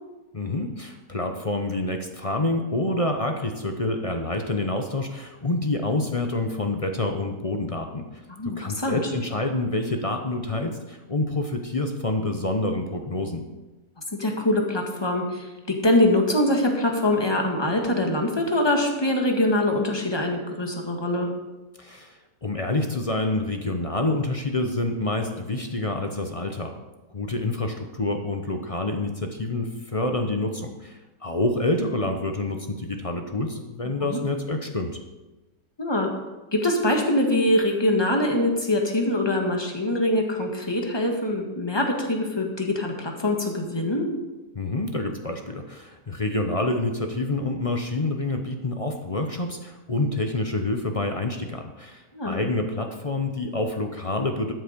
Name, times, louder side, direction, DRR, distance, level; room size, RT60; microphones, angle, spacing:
voice 1, 0.3-13.4 21.8-26.7 27.1-35.0 44.5-54.5, left 2 dB, 30° left, 5 dB, 0.6 m, -27 dB
voice 2, 8.4-9.0 14.2-15.5 15.8-21.3 34.0-34.2 35.8-36.1 36.5-44.1 52.1-52.4, left 1 dB, 15° left, 2 dB, 1.6 m, -23 dB
12.5 x 7.9 x 5.2 m, 1.1 s
omnidirectional pair, 1.7 m